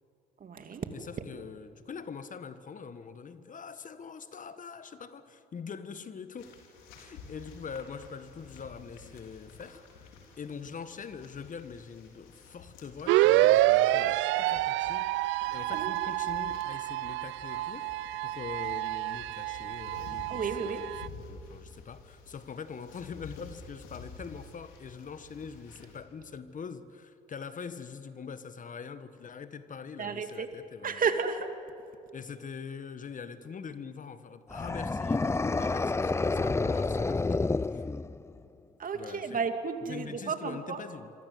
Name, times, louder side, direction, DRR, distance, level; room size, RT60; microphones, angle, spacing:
voice 1, 0.4-0.9 15.7-15.9 20.3-20.8 30.0-30.5 30.8-31.5 38.8-40.8, right 5 dB, 40° right, 2.6 m, -32 dB
voice 2, 0.9-6.6 6.9-17.9 18.2-20.9 21.2-31.0 32.1-37.9 38.9-39.4 39.9-41.1, left 6 dB, 40° left, 1.5 m, -43 dB
sound 1, 6.4-26.0, left 4 dB, 75° left, 4.6 m, -51 dB
sound 2, 13.1-21.1, right 16 dB, 65° right, 0.7 m, -28 dB
sound 3, 34.5-38.4, left 3 dB, 15° left, 0.5 m, -29 dB
26.5 x 25.5 x 7.9 m
hypercardioid pair, 65°, 21 cm